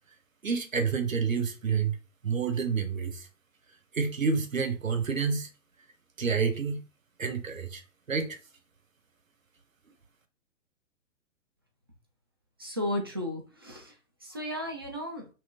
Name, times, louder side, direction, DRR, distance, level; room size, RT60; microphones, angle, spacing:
voice 1, 0.4-2.0 2.2-3.3 3.9-5.5 6.2-6.8 7.2-7.8 8.1-8.4, right 5 dB, 80° right, 0.9 m, -28 dB
voice 2, 12.6-13.9 14.2-15.3, left 1 dB, 20° right, 0.3 m, -34 dB
5.8 x 2.1 x 2.5 m
figure-of-eight pair, 120°, 39 cm